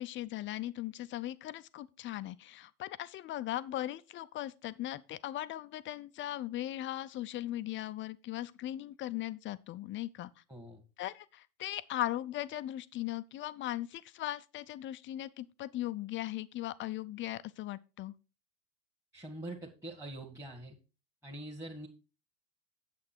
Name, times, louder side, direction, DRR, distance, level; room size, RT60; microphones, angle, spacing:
voice 1, 0.0-10.3 11.0-18.1, left 14 dB, 30° left, 0.5 m, -38 dB
voice 2, 10.5-10.8 19.1-20.8 21.2-21.9, right 1 dB, 5° right, 1.7 m, -44 dB
8.7 x 7.6 x 4.3 m
hypercardioid pair, 85°, 43 cm